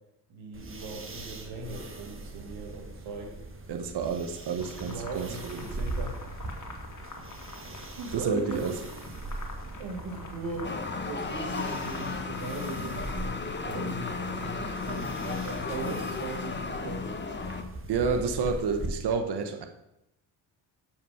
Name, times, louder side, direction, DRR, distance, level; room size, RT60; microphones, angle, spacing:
voice 1, 0.3-3.3 4.8-6.2 8.0-8.7 9.8-10.8 11.0-17.1 18.1-18.3, right 3 dB, 90° right, 2 dB, 2.0 m, -38 dB
sound 1, 0.5-18.9, right 2 dB, 25° right, 1.4 m, -41 dB
voice 2, 3.7-5.6 8.1-8.7 17.9-19.7, right 5 dB, 55° right, 6 dB, 1.1 m, -30 dB
sound 2, 4.6-15.9, left 3 dB, 40° left, 2.1 m, -45 dB
sound 3, 10.6-17.6, left 4 dB, 25° left, 1.1 m, -35 dB
6.9 x 5.8 x 5.7 m, 0.83 s
supercardioid pair, 65°, 46 cm